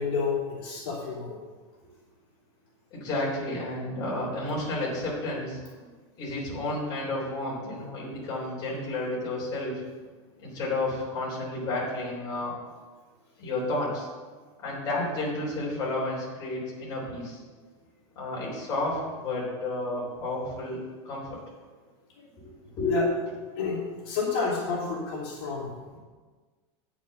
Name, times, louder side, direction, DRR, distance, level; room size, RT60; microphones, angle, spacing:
voice 1, 0.0-1.4 5.8-5.9 22.2-22.3 22.8-23.0 23.6-25.7, left 5 dB, 50° left, -6 dB, 3.0 m, -30 dB
voice 2, 2.9-5.6 6.2-9.8 10.4-12.6 13.4-14.1 14.6-17.4 18.2-20.8 21.0-21.4 22.8-23.0, left 2 dB, 25° left, -6 dB, 3.6 m, -31 dB
9.1 x 7.2 x 6.6 m, 1.4 s
supercardioid pair, 175°, 16 cm